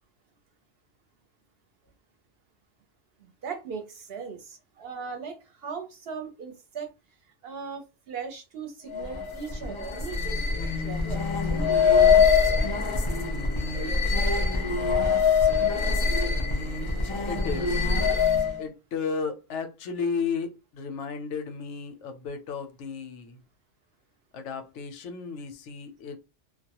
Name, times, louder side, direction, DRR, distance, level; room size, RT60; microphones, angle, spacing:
voice 1, 3.2-6.9 7.4-11.9, right 5 dB, 60° right, 0.8 m, -39 dB
sound 1, 8.9-18.6, left 5 dB, 40° left, 0.4 m, -24 dB
voice 2, 17.3-17.9 18.6-23.4 24.3-26.2, left 5 dB, 80° left, 0.9 m, -33 dB
2.2 x 2.0 x 2.8 m
omnidirectional pair, 1.2 m